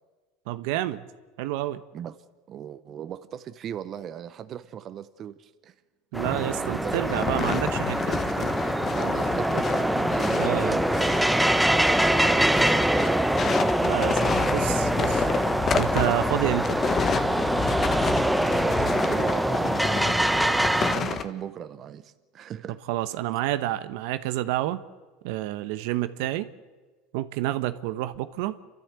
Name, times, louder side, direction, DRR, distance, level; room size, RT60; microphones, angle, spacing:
voice 1, 0.5-1.0 1.4-1.8 6.1-8.5 10.3-10.8 13.8-15.3 15.7-16.8 22.9-24.8 25.2-26.5 27.1-28.5, right 14 dB, 70° right, 1.0 m, -29 dB
voice 2, 2.5-5.7 6.4-7.1 8.9-11.2 12.0-13.4 18.4-22.8, right 9 dB, 40° right, 0.8 m, -38 dB
sound 1, 6.1-21.0, right 1 dB, 5° right, 0.9 m, -24 dB
sound 2, 6.9-21.2, left 6 dB, 30° left, 1.3 m, -30 dB
28.0 x 13.5 x 8.3 m
supercardioid pair, 110°, 0 cm